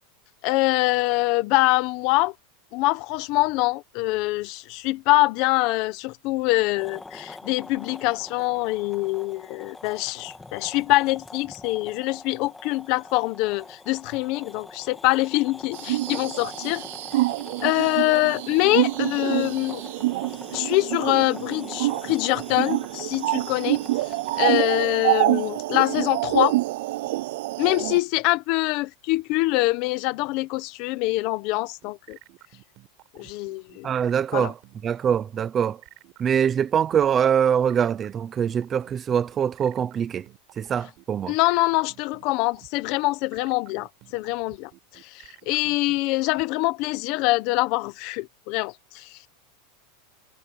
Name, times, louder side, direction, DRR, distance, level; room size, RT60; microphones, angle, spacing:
voice 1, 0.4-2.3 2.7-16.8 17.6-19.8 20.5-26.5 27.6-32.2 33.1-33.9 34.3-34.5 41.3-44.7 45.1-49.3, left 21 dB, 40° left, 1.1 m, -24 dB
sound 1, 6.8-24.6, left 3 dB, 5° left, 2.0 m, -43 dB
sound 2, 15.7-28.0, right 18 dB, 60° right, 0.4 m, -26 dB
sound 3, 31.6-46.4, right 18 dB, 35° right, 7.8 m, -51 dB
voice 2, 33.8-34.5 34.8-35.8 36.2-40.3 40.6-41.3, right 8 dB, 20° right, 0.8 m, -23 dB
supercardioid pair, 175°, 0 cm